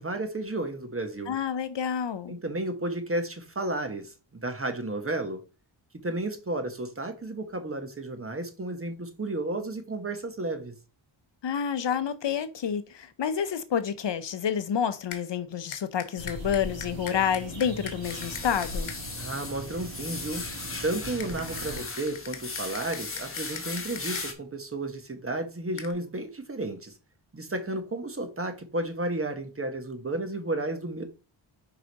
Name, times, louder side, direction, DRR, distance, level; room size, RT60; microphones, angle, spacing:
voice 1, 0.0-1.3 2.3-5.4 6.0-10.7 19.2-20.4 20.8-26.9 27.3-31.0, right 2 dB, 30° right, 1.1 m, -32 dB
voice 2, 1.3-2.4 11.4-18.9, left 8 dB, 60° left, 0.7 m, -29 dB
sound 1, 15.1-15.2 15.7-19.0 21.2-24.2 25.8-25.9, left 7 dB, 75° left, 1.0 m, -41 dB
sound 2, 16.2-21.8, right 1 dB, 65° right, 2.0 m, -40 dB
sound 3, 18.0-24.3, left 3 dB, 25° left, 1.1 m, -38 dB
4.9 x 4.9 x 3.9 m
wide cardioid pair, 95°, 48 cm